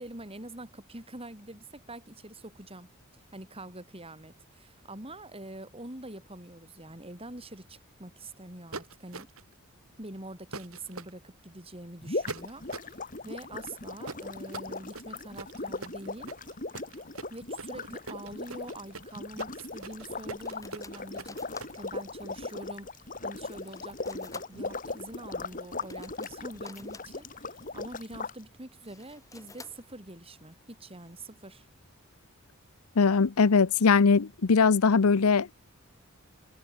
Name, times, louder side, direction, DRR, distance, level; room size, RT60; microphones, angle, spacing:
voice 1, 0.0-2.9 3.3-9.3 10.0-16.3 17.3-31.7, right 1 dB, 25° right, 7.5 m, -45 dB
sound 1, 8.7-9.5 10.5-11.1 12.3-13.0 14.0-21.8, right 3 dB, 75° right, 4.5 m, -42 dB
sound 2, 12.0-28.3, left 3 dB, 40° left, 3.6 m, -38 dB
sound 3, 19.9-31.1, left 3 dB, 15° left, 7.4 m, -55 dB
voice 2, 33.0-35.5, left 5 dB, 85° left, 0.7 m, -21 dB
head